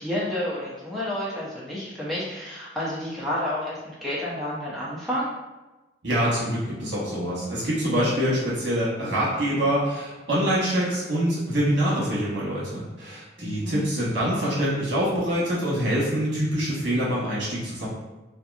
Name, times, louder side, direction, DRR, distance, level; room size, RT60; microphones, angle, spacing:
voice 1, 0.0-5.3 13.4-13.9, left 1 dB, ahead, -9 dB, 0.7 m, -30 dB
voice 2, 6.0-17.9, equal, 70° right, -7 dB, 1.1 m, -25 dB
2.8 x 2.5 x 2.4 m, 1.1 s
head